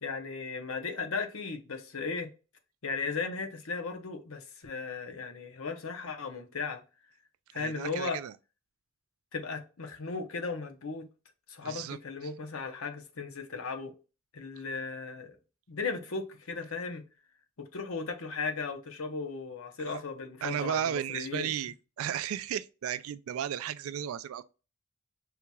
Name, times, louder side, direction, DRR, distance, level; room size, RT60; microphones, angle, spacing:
voice 1, 0.0-2.3 2.8-6.8 7.5-8.2 9.3-11.0 11.5-13.9 14.3-15.4 15.7-17.0 17.7-21.5, left 4 dB, 80° left, 0.8 m, -36 dB
voice 2, 7.5-8.3 11.6-12.0 19.9-20.0 20.4-24.4, right 9 dB, 85° right, 0.3 m, -34 dB
5.7 x 2.8 x 2.3 m
head